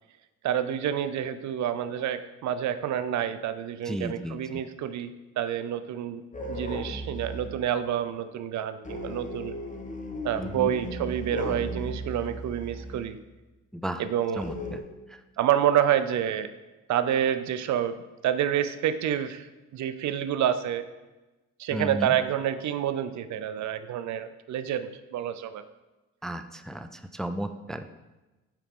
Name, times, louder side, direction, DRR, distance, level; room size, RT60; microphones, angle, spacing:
voice 1, 0.4-6.2 6.5-9.5 10.2-13.2 14.0-14.5 15.4-16.5 16.9-19.5 19.7-20.8 21.6-25.6, right 10 dB, 70° right, 12 dB, 0.6 m, -28 dB
voice 2, 3.9-4.4 10.4-10.7 13.7-14.0 14.4-14.8 21.7-22.1 26.2-27.9, right 1 dB, ahead, 8 dB, 0.4 m, -34 dB
sound 1, 6.3-7.6 8.8-13.1 14.4-14.8, equal, 25° left, 1.4 m, -36 dB
7.4 x 5.0 x 5.3 m, 1.1 s
cardioid pair, 90°, 30 cm